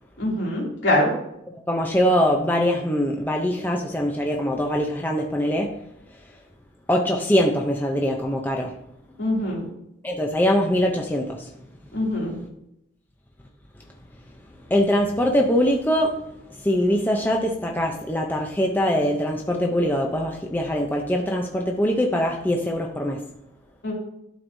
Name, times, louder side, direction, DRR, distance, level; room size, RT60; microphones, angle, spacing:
voice 1, 0.2-1.1 9.2-9.6 11.9-12.3 23.8-23.9, left 1 dB, 70° left, -4 dB, 2.6 m, -23 dB
voice 2, 1.7-5.7 6.9-8.7 10.0-11.5 14.7-16.2 16.5-23.2, equal, 10° left, 1 dB, 0.5 m, -22 dB
12.0 x 4.5 x 2.7 m, 0.81 s
head